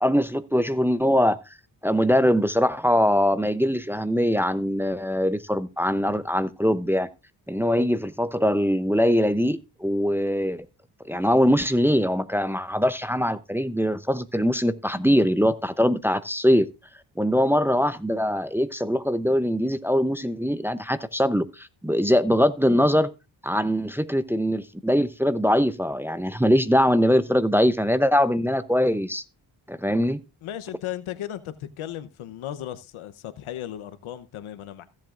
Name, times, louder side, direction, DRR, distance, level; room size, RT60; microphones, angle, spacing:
voice 1, 0.0-1.4 1.8-7.1 7.5-10.7 11.1-16.7 17.2-23.1 23.4-29.2 29.7-30.2, equal, 5° right, 0.6 m, -22 dB
voice 2, 30.4-34.8, left 11 dB, 85° left, 0.9 m, -36 dB
16.0 x 7.6 x 2.5 m
cardioid pair, 65°, 48 cm